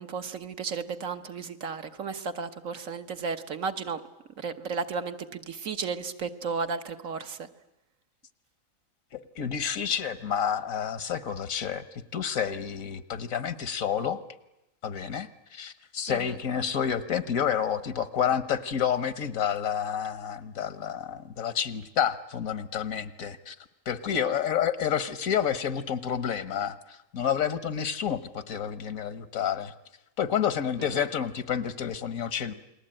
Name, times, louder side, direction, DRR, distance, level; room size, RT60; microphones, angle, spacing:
voice 1, 0.0-4.0 4.4-7.5 16.1-16.3 24.1-24.3 30.8-31.0, right 5 dB, 80° right, 8 dB, 1.7 m, -34 dB
voice 2, 9.1-11.8 12.1-14.2 14.8-23.6 23.9-29.7 30.2-32.5, left 8 dB, 90° left, 14 dB, 1.6 m, -29 dB
29.0 x 20.5 x 8.9 m, 0.90 s
omnidirectional pair, 1.4 m